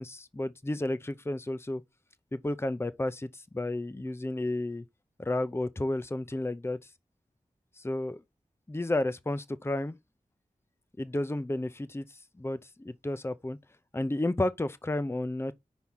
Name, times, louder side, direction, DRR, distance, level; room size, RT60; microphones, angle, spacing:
voice 1, 0.0-1.8 2.3-4.8 5.2-6.8 7.8-8.2 8.7-10.0 11.0-12.1 12.4-13.6 13.9-15.5, left 1 dB, 20° left, 0.6 m, -32 dB
6.1 x 4.8 x 5.7 m
wide cardioid pair, 60°, 14 cm